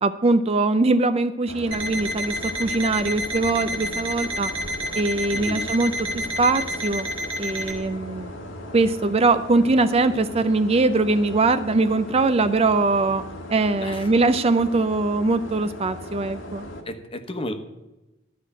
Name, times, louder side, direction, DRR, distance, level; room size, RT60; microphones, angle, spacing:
voice 1, 0.0-4.5 4.9-7.1 7.4-8.3 8.7-13.2 13.5-16.6, right 3 dB, 30° right, 11 dB, 0.4 m, -22 dB
sound 1, 1.5-16.8, left 1 dB, 90° left, 1.7 m, -38 dB
Alarm, 1.7-7.8, equal, 60° right, 1.7 m, -30 dB
voice 2, 5.3-5.7 13.8-14.1 16.9-17.5, left 1 dB, 30° left, 7 dB, 1.1 m, -33 dB
13.0 x 5.0 x 8.9 m, 1.0 s
head